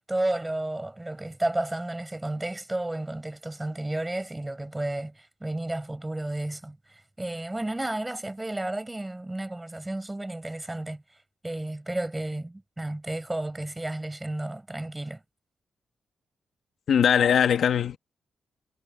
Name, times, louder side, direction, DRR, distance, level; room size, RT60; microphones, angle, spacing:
voice 1, 0.0-11.0 11.4-15.2, right 1 dB, 10° right, 5.3 m, -32 dB
voice 2, 16.9-18.0, left 8 dB, 70° left, 2.2 m, -21 dB
wide cardioid pair, 145°, 0 cm